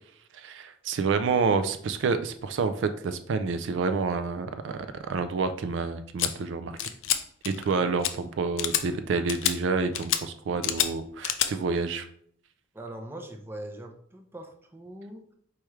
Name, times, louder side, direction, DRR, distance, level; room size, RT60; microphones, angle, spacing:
voice 1, 0.3-6.8 7.4-12.1, right 4 dB, 65° right, 10 dB, 0.3 m, -28 dB
sound 1, 6.2-6.3 6.8-7.2 7.4-7.7 8.0-8.1 8.6-8.8 9.3-9.5 10.0-10.2 10.6-10.9 11.2-11.5, left 11 dB, 75° left, 0.4 m, -27 dB
voice 2, 12.7-15.3, right 1 dB, 10° right, 3 dB, 0.5 m, -42 dB
4.6 x 3.4 x 3.1 m, 0.64 s
head